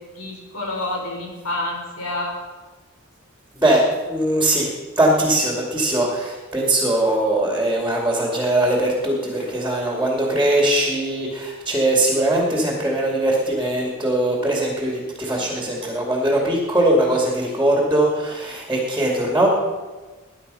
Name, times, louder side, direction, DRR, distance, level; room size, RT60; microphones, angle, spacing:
voice 1, 0.1-2.3 15.3-15.5, left 2 dB, 85° left, -1 dB, 5.0 m, -28 dB
voice 2, 3.6-4.7 5.0-19.5, right 1 dB, 10° right, -1 dB, 2.4 m, -20 dB
19.5 x 10.5 x 5.6 m, 1.3 s
head